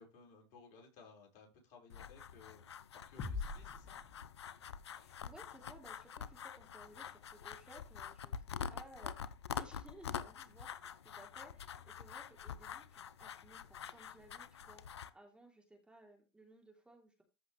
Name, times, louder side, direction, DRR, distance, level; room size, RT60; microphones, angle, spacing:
voice 1, 0.0-4.0, left 4 dB, 55° left, 1 dB, 4.9 m, -60 dB
sound 1, 1.9-15.1, left 8 dB, 90° left, 0.7 m, -46 dB
sound 2, 3.2-4.9, left 4 dB, 40° left, 2.0 m, -44 dB
voice 2, 5.0-17.2, right 1 dB, 5° right, 1 dB, 3.2 m, -59 dB
14.0 x 6.2 x 3.2 m, 0.28 s
hypercardioid pair, 100°, 14 cm